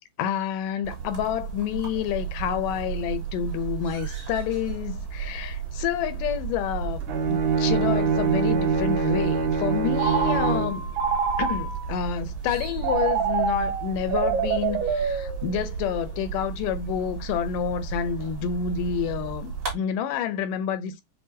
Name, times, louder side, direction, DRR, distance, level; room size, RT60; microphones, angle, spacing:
voice 1, 0.2-10.9 11.4-21.0, left 8 dB, 80° left, 2.2 m, -29 dB
sound 1, 0.8-19.7, right 6 dB, 50° right, 3.0 m, -34 dB
Bowed string instrument, 7.0-10.9, right 5 dB, 70° right, 1.3 m, -24 dB
Telephone, 10.0-12.0 12.8-15.9, right 6 dB, 85° right, 2.9 m, -27 dB
7.2 x 2.5 x 2.7 m
omnidirectional pair, 3.8 m